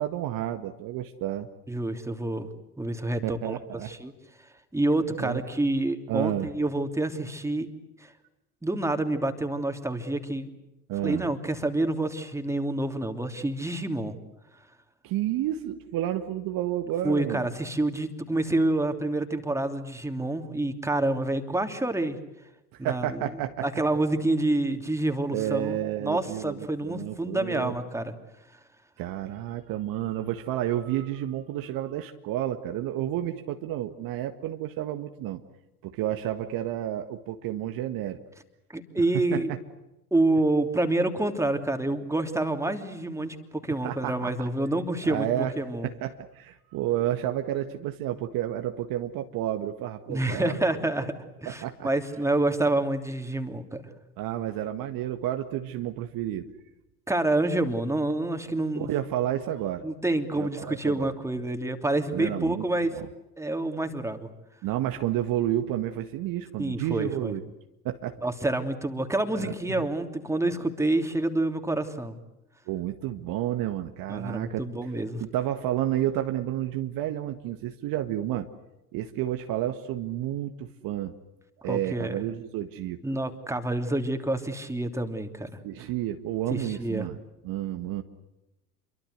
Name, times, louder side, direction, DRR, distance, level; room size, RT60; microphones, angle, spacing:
voice 1, 0.0-1.5 3.2-3.9 5.2-5.4 6.1-6.5 10.9-11.3 15.0-17.5 22.7-23.7 25.3-27.8 29.0-35.4 35.8-38.2 39.3-39.4 43.8-44.3 45.1-45.5 45.8-50.8 51.5-51.9 54.2-56.5 58.7-59.8 60.4-61.1 62.1-62.6 64.6-67.4 67.9-68.2 69.3-69.8 72.7-74.6 75.2-78.5 78.9-81.2 81.6-83.0 85.6-87.2 87.4-88.0, right 12 dB, 45° right, 7 dB, 1.7 m, -30 dB
voice 2, 1.7-2.5 2.8-3.6 3.8-4.1 4.7-7.7 8.0-8.1 8.6-10.5 11.0-14.1 17.0-22.2 22.8-23.3 23.6-28.1 38.7-39.5 40.1-45.3 45.6-45.9 50.1-51.1 51.4-53.9 57.1-58.9 59.8-62.9 63.4-64.3 66.6-67.3 68.2-72.1 74.1-75.2 81.6-82.1 83.0-85.5 86.5-87.1, right 2 dB, 5° right, 6 dB, 3.0 m, -28 dB
28.5 x 23.5 x 8.1 m, 0.94 s
figure-of-eight pair, 65°, 46 cm